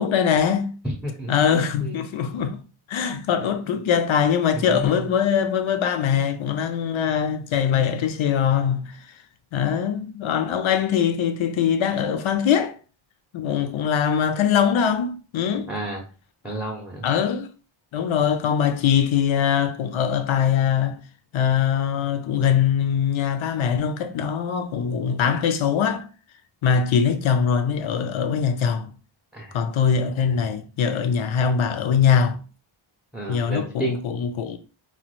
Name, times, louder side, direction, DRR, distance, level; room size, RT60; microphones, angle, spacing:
voice 1, 0.0-0.7 1.3-2.6 2.9-9.0 9.5-12.8 13.3-15.7 17.0-17.5 17.9-21.0 21.3-26.1 26.6-28.9 29.5-32.4 33.3-34.6, left 7 dB, 75° left, 0.5 m, -22 dB
voice 2, 0.8-2.0 4.7-5.0 6.1-6.2 7.7-7.8 15.7-16.0 16.4-17.0 29.3-29.5 33.1-33.9, right 1 dB, 5° right, 0.5 m, -31 dB
3.0 x 2.2 x 3.0 m
wide cardioid pair, 160°, 48 cm